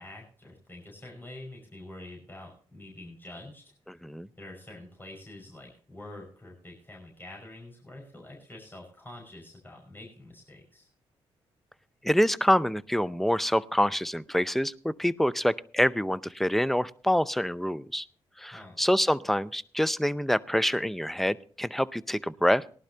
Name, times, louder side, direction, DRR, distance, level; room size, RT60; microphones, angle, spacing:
voice 1, 0.0-3.6 4.4-10.9 18.5-18.8, left 1 dB, 20° left, -1 dB, 5.5 m, -46 dB
voice 2, 3.9-4.3 12.0-18.1 18.4-22.6, equal, ahead, 15 dB, 0.6 m, -26 dB
19.0 x 11.5 x 2.8 m, 0.42 s
hypercardioid pair, 45°, 12 cm